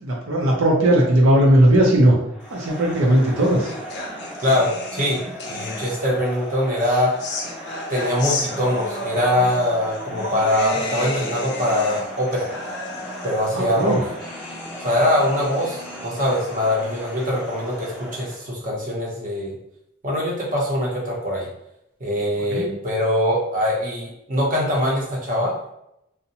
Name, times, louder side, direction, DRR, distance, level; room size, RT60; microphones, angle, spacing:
voice 1, 0.0-2.2 2.5-3.7 13.5-14.0 22.5-22.7, right 1 dB, 75° right, -3 dB, 0.6 m, -17 dB
Crowd, 2.3-18.5, right 1 dB, ahead, 0.3 m, -37 dB
sound 1, 2.9-6.3 6.8-18.2, left 2 dB, 50° left, 0.5 m, -34 dB
voice 2, 4.4-5.2 5.5-7.1 7.9-12.5 13.2-14.0 14.8-19.5 20.0-21.5 22.0-25.5, left 1 dB, 40° right, -3 dB, 0.7 m, -22 dB
2.6 x 2.1 x 2.8 m, 0.81 s
head